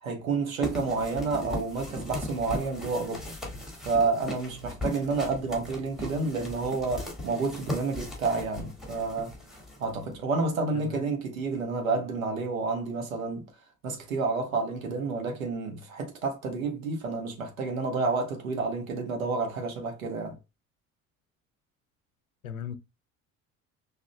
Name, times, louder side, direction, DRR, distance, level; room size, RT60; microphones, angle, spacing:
voice 1, 0.0-3.3 3.8-9.3 9.8-13.5 13.8-20.4, right 4 dB, 75° right, 1.2 m, -30 dB
sound 1, 0.6-10.1, left 1 dB, ahead, 1.8 m, -38 dB
voice 2, 10.7-11.1 22.4-22.8, left 8 dB, 85° left, 0.5 m, -38 dB
6.0 x 2.8 x 2.2 m
figure-of-eight pair, 60°, 41 cm